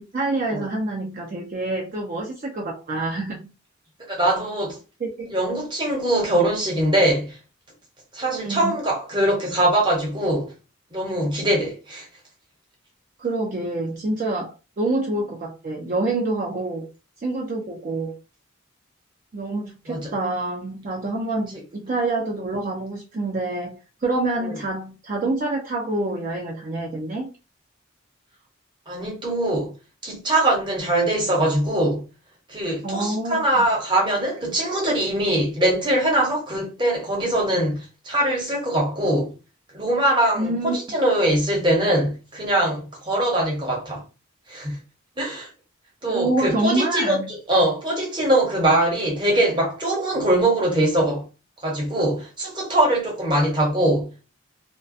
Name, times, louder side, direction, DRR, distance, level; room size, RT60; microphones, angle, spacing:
voice 1, 0.1-3.5 5.0-5.4 8.2-8.7 13.2-16.8 17.2-18.1 19.3-27.3 32.8-33.4 40.3-40.8 46.0-47.3, right 2 dB, 40° right, 0.4 m, -27 dB
voice 2, 4.1-4.8 5.3-7.4 8.1-10.5 10.9-12.1 19.9-20.1 24.4-24.5 28.9-29.7 30.0-32.0 32.5-39.3 39.7-44.0 44.5-44.8 45.2-45.5 46.0-47.2 47.5-51.3 51.6-54.1, right 1 dB, 20° right, 0.8 m, -22 dB
2.3 x 2.1 x 2.5 m
head